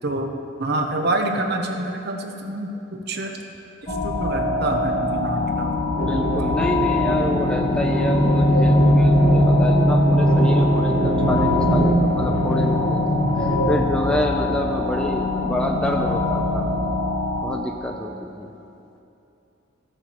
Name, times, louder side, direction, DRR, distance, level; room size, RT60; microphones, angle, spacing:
voice 1, 0.6-3.4 4.0-5.7, right 2 dB, 55° right, 3 dB, 0.9 m, -26 dB
sound 1, 3.9-17.5, left 3 dB, 25° left, 1.3 m, -24 dB
voice 2, 5.7-16.7 17.4-18.5, equal, 5° left, 2 dB, 0.5 m, -28 dB
sound 2, 6.0-14.7, equal, 80° left, 2.5 m, -20 dB
14.5 x 6.6 x 4.4 m, 2.8 s
head